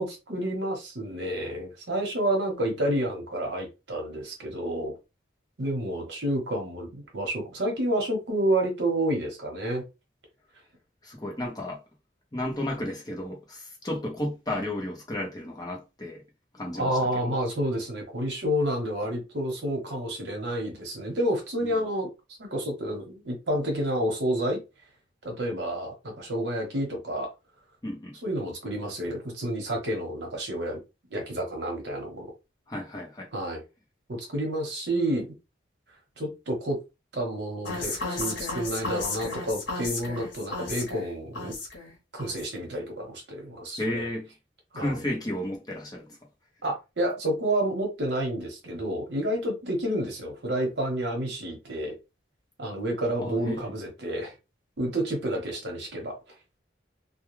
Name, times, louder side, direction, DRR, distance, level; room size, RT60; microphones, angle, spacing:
voice 1, 0.0-4.9 5.6-9.9 16.7-22.1 22.4-24.6 25.2-27.3 28.2-30.8 31.1-32.3 33.3-33.6 34.1-35.2 36.2-36.8 37.1-41.6 42.1-44.1 44.7-45.0 46.6-52.0 52.6-54.3 54.8-56.2, right 1 dB, 65° right, 0.9 m, -29 dB
voice 2, 11.0-11.8 12.3-16.2 16.5-16.9 17.2-17.3 21.6-21.7 27.8-28.2 32.7-33.3 43.8-44.3 44.7-46.2 53.2-53.6, left 1 dB, 20° left, 0.7 m, -33 dB
sound 1, 37.7-41.9 42.2-42.6, left 3 dB, 80° left, 0.9 m, -34 dB
2.3 x 2.3 x 3.0 m
head